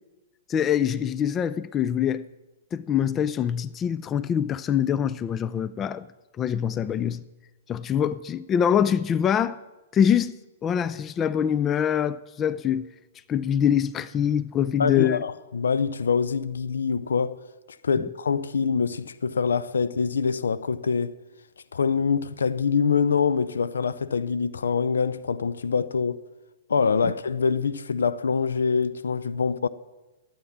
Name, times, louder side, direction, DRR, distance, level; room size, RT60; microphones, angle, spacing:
voice 1, 0.5-2.3 2.7-6.1 6.4-7.2 7.7-9.6 9.9-10.4 10.6-12.9 13.3-15.2 18.0-18.1, left 9 dB, 25° left, 0.4 m, -24 dB
voice 2, 14.8-17.4 17.8-21.2 21.7-26.2 26.7-29.7, left 5 dB, 70° left, 0.5 m, -25 dB
12.5 x 8.8 x 7.2 m
figure-of-eight pair, 110°, 0 cm